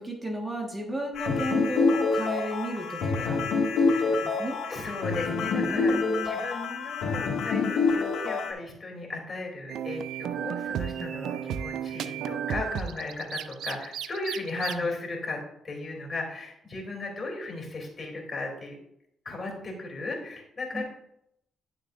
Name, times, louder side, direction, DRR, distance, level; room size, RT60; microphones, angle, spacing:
voice 1, 0.0-3.5 3.8-4.6 5.7-6.5 14.5-14.9 20.7-20.8, right 1 dB, 20° right, 1 dB, 1.5 m, -34 dB
sound 1, 1.2-8.5, left 4 dB, 80° left, 2.0 m, -26 dB
voice 2, 3.8-5.9 6.2-18.8 19.2-20.8, left 3 dB, 35° left, 0 dB, 3.0 m, -36 dB
sound 2, 9.7-14.7, right 9 dB, 75° right, 0.4 m, -33 dB
11.0 x 6.7 x 2.6 m, 0.77 s
cardioid pair, 90°, 0 cm